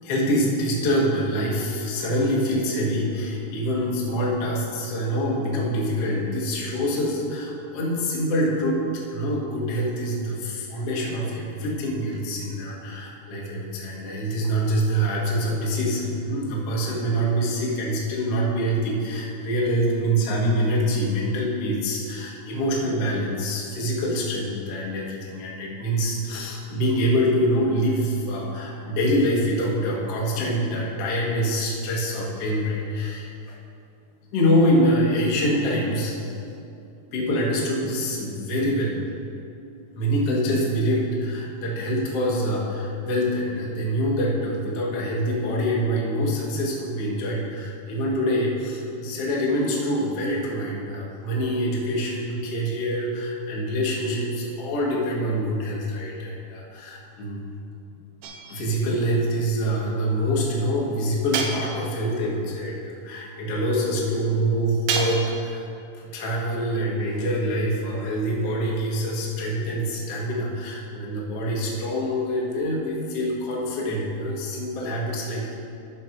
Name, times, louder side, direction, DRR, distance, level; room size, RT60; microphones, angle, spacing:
voice 1, 0.0-33.5 34.3-36.2 37.1-39.2 39.9-57.4 58.5-65.6 66.0-75.5, equal, 80° left, -4 dB, 1.3 m, -25 dB
sound 1, 58.2-58.9 61.3-62.1 64.9-65.5, right 5 dB, 85° right, 2.0 m, -29 dB
13.5 x 5.2 x 4.5 m, 2.6 s
omnidirectional pair, 5.1 m